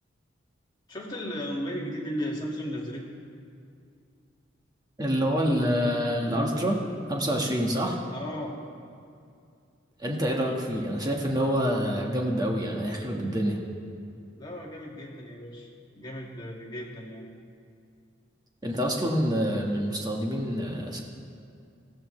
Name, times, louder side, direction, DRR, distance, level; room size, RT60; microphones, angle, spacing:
voice 1, 0.9-3.1 8.1-8.5 10.2-10.6 14.4-15.7 15.9-17.2, equal, 20° left, -2 dB, 2.0 m, -35 dB
voice 2, 5.0-6.8 7.1-8.0 10.0-13.6 18.6-21.0, equal, 20° right, 0 dB, 1.5 m, -27 dB
20.0 x 15.0 x 3.3 m, 2.4 s
head